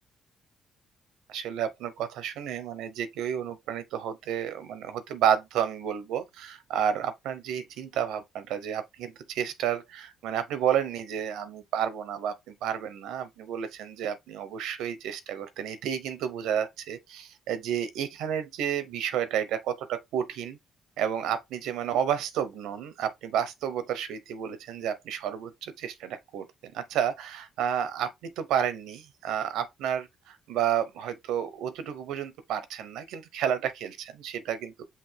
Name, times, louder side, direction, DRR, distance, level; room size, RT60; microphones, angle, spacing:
voice 1, 1.3-20.6 21.0-34.8, right 9 dB, 90° right, 0.7 m, -31 dB
5.7 x 2.5 x 3.2 m
cardioid pair, 90°, 0 cm